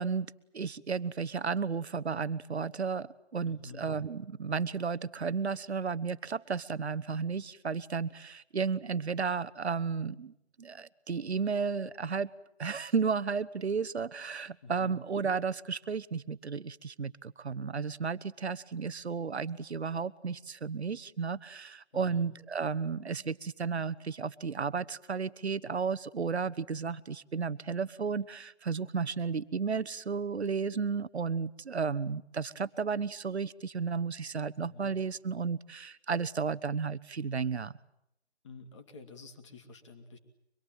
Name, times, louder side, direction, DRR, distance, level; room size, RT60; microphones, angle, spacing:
voice 1, 0.0-12.3 12.6-37.7, right 5 dB, 70° right, 14 dB, 1.2 m, -33 dB
voice 2, 3.5-3.9 14.6-15.0 21.9-22.3 34.7-35.0 38.4-40.2, left 3 dB, 25° left, 7 dB, 2.6 m, -48 dB
25.0 x 22.0 x 9.1 m, 0.82 s
figure-of-eight pair, 165°, 34 cm